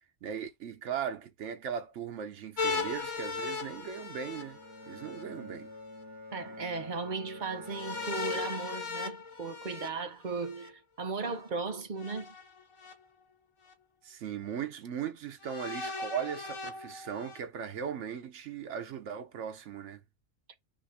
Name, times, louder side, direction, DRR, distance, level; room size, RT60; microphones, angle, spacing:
voice 1, 0.2-4.6 4.9-5.7 14.0-20.0, right 8 dB, 85° right, 1.1 m, -38 dB
sound 1, 2.6-5.2 7.7-10.7 12.0-12.9 13.7-13.8 15.4-17.4, left 4 dB, 30° left, 0.7 m, -37 dB
Bowed string instrument, 4.1-9.4, left 1 dB, 15° right, 1.5 m, -48 dB
voice 2, 6.3-12.3, right 4 dB, 45° right, 0.8 m, -36 dB
5.7 x 2.5 x 3.4 m
omnidirectional pair, 1.2 m